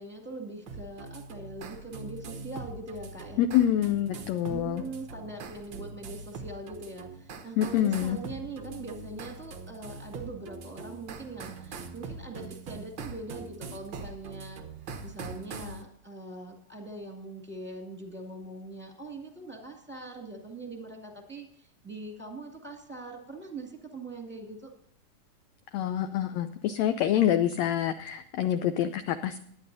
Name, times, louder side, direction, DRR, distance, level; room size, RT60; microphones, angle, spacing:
voice 1, 0.0-3.5 4.5-14.6 15.0-24.7, right 2 dB, 5° right, -1 dB, 1.2 m, -42 dB
sound 1, 0.7-15.8, right 4 dB, 80° right, 1.0 m, -42 dB
voice 2, 3.4-4.8 7.6-8.2 25.7-29.4, left 11 dB, 85° left, 9 dB, 1.6 m, -26 dB
19.5 x 10.0 x 2.7 m, 0.66 s
omnidirectional pair, 3.7 m